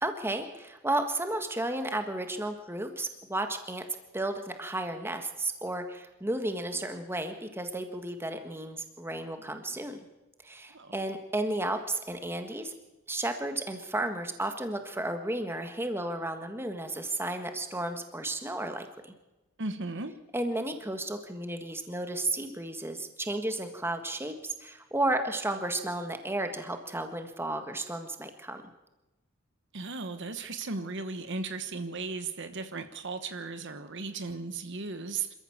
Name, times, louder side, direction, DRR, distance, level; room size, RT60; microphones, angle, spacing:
voice 1, 0.0-3.8 4.1-10.0 10.4-12.7 13.1-19.1 20.3-28.6, right 1 dB, 10° right, 7 dB, 1.6 m, -33 dB
voice 2, 19.6-20.1 29.7-35.3, right 3 dB, 55° right, 10 dB, 1.2 m, -36 dB
26.5 x 14.0 x 7.2 m, 1.0 s
head